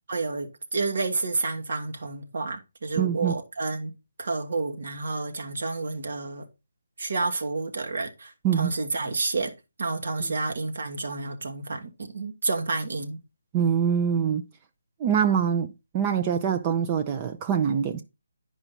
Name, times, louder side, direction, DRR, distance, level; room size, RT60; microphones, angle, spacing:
voice 1, 0.1-3.9 4.2-6.5 7.0-9.5 9.8-13.2, right 3 dB, 60° right, 1.6 m, -30 dB
voice 2, 3.0-3.3 8.4-8.7 13.5-14.4 15.0-18.0, right 8 dB, 25° right, 0.5 m, -24 dB
9.8 x 5.0 x 3.9 m
figure-of-eight pair, 150°, 0 cm